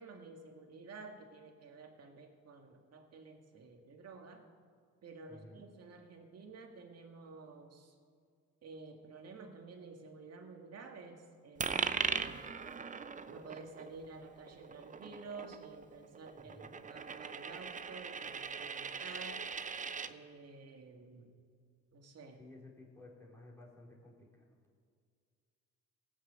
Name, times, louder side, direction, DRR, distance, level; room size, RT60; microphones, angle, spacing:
voice 1, 0.0-4.4 5.0-7.9 8.6-12.5 13.3-19.4 20.1-21.3 21.9-22.5, right 3 dB, 55° right, 3 dB, 2.0 m, -51 dB
voice 2, 5.3-5.7 16.4-16.8 22.4-24.3, left 2 dB, 10° left, -4 dB, 3.7 m, -55 dB
Coin (dropping), 11.6-20.1, right 6 dB, 25° right, 0.6 m, -40 dB
18.0 x 6.4 x 8.1 m, 2.1 s
cardioid pair, 90°, 30 cm